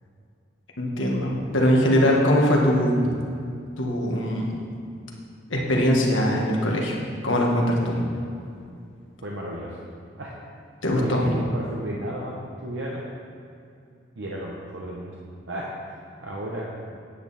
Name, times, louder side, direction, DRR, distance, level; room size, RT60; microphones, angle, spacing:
voice 1, 0.8-3.1 3.8-4.6 5.5-8.1 10.8-11.4, equal, 85° left, -1 dB, 1.6 m, -22 dB
voice 2, 9.2-9.8 10.2-10.4 10.9-13.0 14.2-15.2 15.5-16.6, right 1 dB, 75° right, -4 dB, 1.0 m, -33 dB
9.5 x 8.7 x 4.2 m, 2.4 s
head